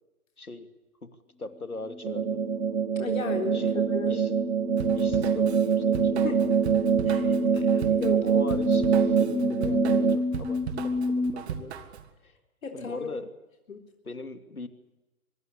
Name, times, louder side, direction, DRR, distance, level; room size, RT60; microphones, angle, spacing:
voice 1, 0.4-0.7 1.0-2.4 3.5-4.3 4.9-6.4 8.1-11.8 12.2-12.3 12.7-13.3 14.0-14.7, left 3 dB, 85° left, 9 dB, 2.8 m, -40 dB
sound 1, 1.9-11.3, left 3 dB, 5° left, 0.8 m, -31 dB
sound 2, 2.0-10.2, right 8 dB, 65° right, 1.5 m, -25 dB
voice 2, 3.0-3.6 3.9-4.2 6.2-6.4 7.1-8.2 12.6-13.2 13.7-13.8, left 5 dB, 65° left, 3 dB, 3.8 m, -35 dB
Drum kit / Drum, 4.8-12.1, right 8 dB, 50° right, 2.6 m, -37 dB
24.0 x 22.5 x 8.3 m, 1.0 s
figure-of-eight pair, 120°, 43 cm